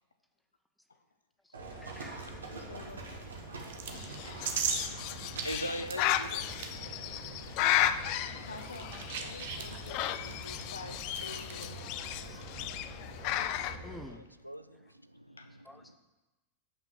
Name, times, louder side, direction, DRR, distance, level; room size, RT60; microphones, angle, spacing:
Livestock farm animals working animals, 1.5-14.0, right 2 dB, 70° right, 1.6 m, -45 dB
voice 1, 1.8-2.2 3.9-4.4 9.9-11.4 11.7-12.4 12.7-13.1 13.8-14.2 15.6-15.8, left 1 dB, 5° left, 7 dB, 0.8 m, -53 dB
voice 2, 2.5-3.2 7.3-7.7 8.3-12.0 13.0-13.2 15.4-15.5, left 4 dB, 75° left, 8 dB, 0.7 m, -49 dB
sound 1, 3.6-13.2, right 6 dB, 55° right, 1.0 m, -42 dB
Bird, 3.9-13.8, left 12 dB, 45° left, 0.4 m, -34 dB
voice 3, 4.9-6.5 14.0-16.0, equal, 90° right, 12 dB, 0.4 m, -42 dB
8.5 x 5.7 x 6.0 m, 1.1 s
figure-of-eight pair, 90°, 0 cm